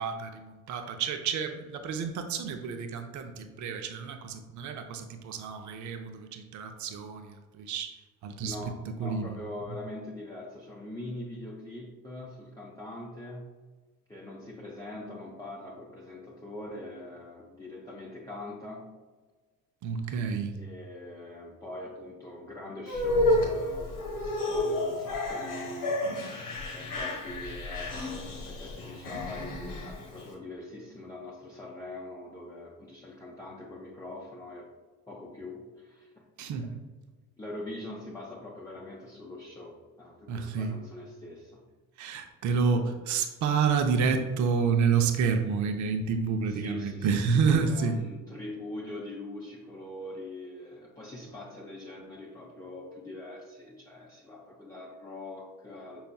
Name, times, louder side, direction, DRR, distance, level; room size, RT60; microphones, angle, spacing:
voice 1, 0.0-7.9 8.2-9.4 19.8-20.6 36.4-36.7 40.3-40.8 42.0-48.0, right 5 dB, 60° right, 6 dB, 0.7 m, -29 dB
voice 2, 8.4-13.5 14.1-18.9 20.5-34.7 35.1-36.2 36.6-36.8 37.4-41.6 46.5-56.1, left 1 dB, 10° left, -4 dB, 0.7 m, -43 dB
sound 1, 22.9-30.3, left 1 dB, 90° left, 1.2 m, -31 dB
5.6 x 4.0 x 2.3 m, 1.3 s
supercardioid pair, 80°, 34 cm